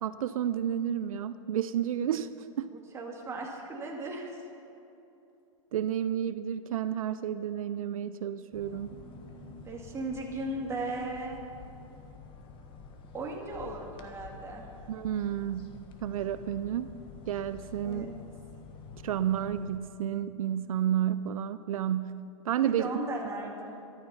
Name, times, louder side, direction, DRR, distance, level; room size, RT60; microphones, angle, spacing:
voice 1, 0.0-2.7 5.7-8.9 14.9-15.8 16.0-16.9 17.3-18.1 19.0-22.9, right 10 dB, 80° right, 13 dB, 0.5 m, -31 dB
voice 2, 2.7-4.3 8.9-11.4 13.1-14.7 17.8-18.2 22.6-23.7, right 2 dB, 15° right, -1 dB, 2.3 m, -37 dB
sound 1, 8.5-19.8, left 5 dB, 30° left, 1.4 m, -49 dB
14.0 x 13.0 x 5.7 m, 2.8 s
hypercardioid pair, 140°, 18 cm